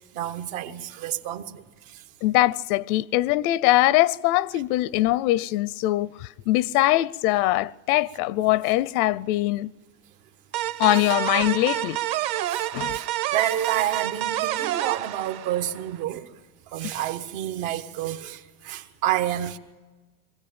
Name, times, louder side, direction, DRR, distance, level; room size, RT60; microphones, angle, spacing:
voice 1, 0.1-2.0 11.0-11.1 12.5-12.6 12.9-16.3 16.7-19.6, right 12 dB, 70° right, 1.5 m, -29 dB
voice 2, 2.2-9.7 10.8-12.0 12.7-13.0, left 16 dB, 75° left, 0.6 m, -22 dB
sound 1, 10.5-16.0, right 14 dB, 50° right, 1.0 m, -28 dB
23.5 x 16.5 x 8.8 m
cardioid pair, 170°, 44 cm